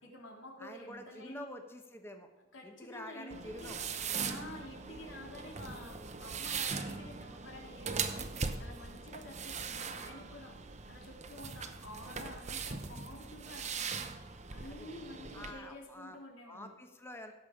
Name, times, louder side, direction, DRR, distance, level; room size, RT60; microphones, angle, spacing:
voice 1, 0.0-1.5 2.5-3.8 4.3-16.7, left 1 dB, 75° left, 0 dB, 3.1 m, -50 dB
voice 2, 0.6-2.3 2.6-3.8 14.7-14.9 15.3-16.2 16.5-17.3, left 1 dB, 10° left, 5 dB, 1.0 m, -47 dB
sound 1, 3.3-15.5, right 5 dB, 35° right, 0.8 m, -40 dB
17.0 x 7.0 x 5.0 m, 1.2 s
head